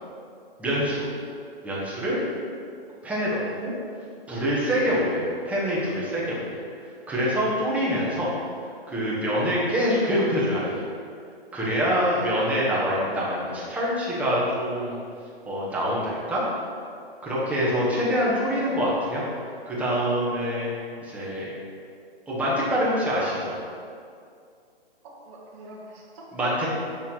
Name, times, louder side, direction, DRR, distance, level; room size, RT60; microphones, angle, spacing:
voice 1, 0.6-1.1 1.6-2.2 3.0-3.7 4.3-8.3 8.9-10.9 11.5-15.0 15.4-16.4 17.2-19.2 19.7-20.7 21.0-21.5 22.3-23.6 26.3-26.7, equal, 5° right, -8 dB, 0.9 m, -25 dB
voice 2, 11.8-12.3 25.0-26.3, right 1 dB, 30° right, -3 dB, 1.1 m, -44 dB
6.2 x 3.5 x 4.3 m, 2.3 s
hypercardioid pair, 140°, 31 cm